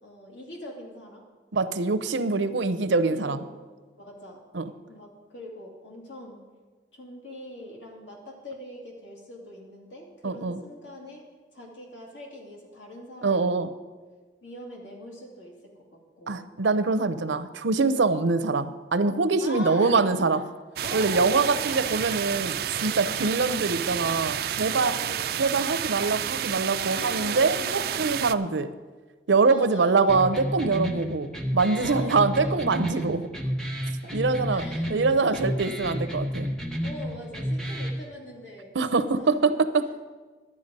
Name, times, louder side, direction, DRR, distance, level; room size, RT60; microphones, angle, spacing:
voice 1, 0.0-1.2 2.2-3.6 3.9-4.4 4.9-6.4 6.9-11.2 11.5-13.8 14.4-16.5 18.0-18.1 19.4-20.1 20.8-22.1 22.7-23.9 24.7-25.5 26.9-28.1 29.5-30.0 31.8-32.7 32.9-33.1 34.0-35.7 36.8-39.3, left 1 dB, 85° left, -1 dB, 2.7 m, -42 dB
voice 2, 1.5-3.4 4.5-4.7 10.2-10.6 13.2-13.7 16.3-20.4 20.9-25.0 25.4-28.7 29.3-33.3 34.1-36.5 38.7-39.9, right 4 dB, 85° right, 12 dB, 0.7 m, -24 dB
sound 1, 20.8-28.3, right 10 dB, 55° right, 0.3 m, -30 dB
sound 2, 30.1-38.1, equal, 5° left, 1.0 m, -31 dB
12.0 x 9.5 x 5.3 m, 1.4 s
head